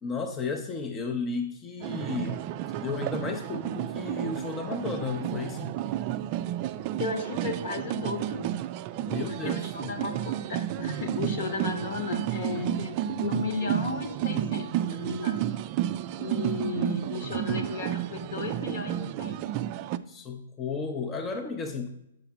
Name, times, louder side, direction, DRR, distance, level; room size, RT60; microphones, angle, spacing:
voice 1, 0.0-2.4 2.8-5.7 9.0-10.0 20.1-21.9, left 4 dB, 20° left, 0.5 m, -33 dB
sound 1, 1.8-20.0, right 12 dB, 35° right, 0.3 m, -31 dB
voice 2, 7.0-8.5 9.2-15.4 16.2-19.4, left 4 dB, 55° left, 1.2 m, -34 dB
6.8 x 5.0 x 5.8 m
hypercardioid pair, 135°, 0 cm